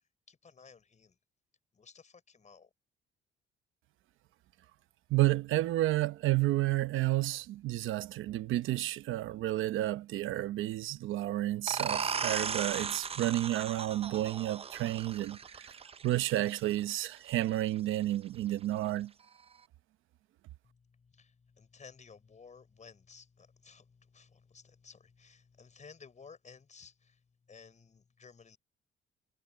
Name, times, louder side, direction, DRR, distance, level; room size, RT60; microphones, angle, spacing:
voice 1, 0.3-1.2 1.7-2.7 20.6-28.6, left 5 dB, 35° left, 5.2 m, -56 dB
voice 2, 5.1-15.7 16.0-19.1, right 15 dB, 85° right, 1.0 m, -31 dB
sound 1, 11.7-17.1, right 6 dB, 30° right, 0.6 m, -37 dB
cardioid pair, 90°, 20 cm